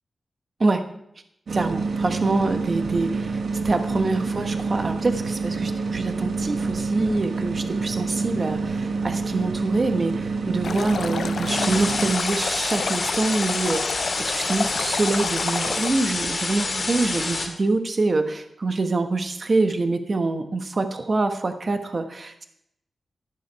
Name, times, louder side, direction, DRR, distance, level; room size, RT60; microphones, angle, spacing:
voice 1, 1.5-22.4, right 3 dB, 35° right, 7 dB, 1.2 m, -25 dB
sound 1, 1.5-12.1, right 4 dB, 65° right, 1.1 m, -27 dB
Stream, 10.6-15.9, left 5 dB, 65° left, 0.5 m, -30 dB
sound 2, 11.5-17.5, left 3 dB, 45° left, 2.0 m, -27 dB
13.0 x 11.0 x 4.7 m, 0.75 s
wide cardioid pair, 175°, 0 cm